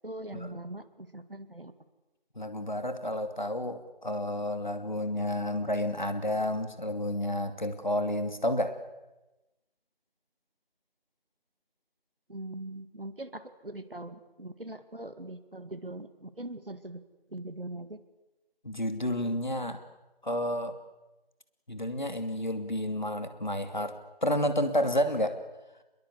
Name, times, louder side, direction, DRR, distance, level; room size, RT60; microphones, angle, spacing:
voice 1, 0.0-1.7 12.3-17.0 17.3-18.0, right 1 dB, 65° right, 11 dB, 2.2 m, -41 dB
voice 2, 2.4-8.8 18.6-19.8 20.2-20.7 21.7-25.4, left 1 dB, 50° left, 9 dB, 2.7 m, -30 dB
28.0 x 22.0 x 8.2 m, 1.0 s
figure-of-eight pair, 180°, 30 cm